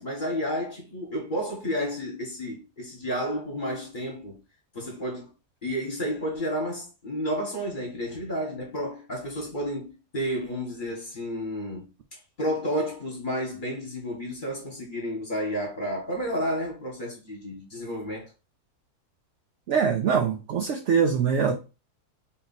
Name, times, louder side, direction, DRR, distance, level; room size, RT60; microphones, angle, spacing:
voice 1, 0.0-4.4 4.7-5.3 5.6-18.3, equal, 35° left, 1.3 m, -31 dB
voice 2, 19.7-21.6, right 6 dB, 70° right, 0.7 m, -23 dB
3.9 x 2.6 x 4.1 m
omnidirectional pair, 1.7 m